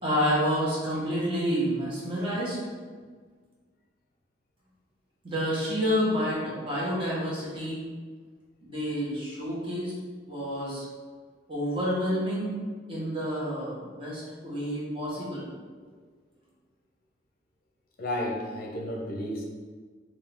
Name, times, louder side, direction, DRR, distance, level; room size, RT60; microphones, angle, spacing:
voice 1, 0.0-2.6 5.2-7.8 8.6-9.9 10.2-10.8 11.5-12.5 12.9-15.4, equal, 30° right, -7 dB, 1.2 m, -29 dB
voice 2, 18.0-19.4, left 1 dB, 55° left, 0 dB, 0.6 m, -32 dB
3.6 x 2.7 x 3.4 m, 1.5 s
head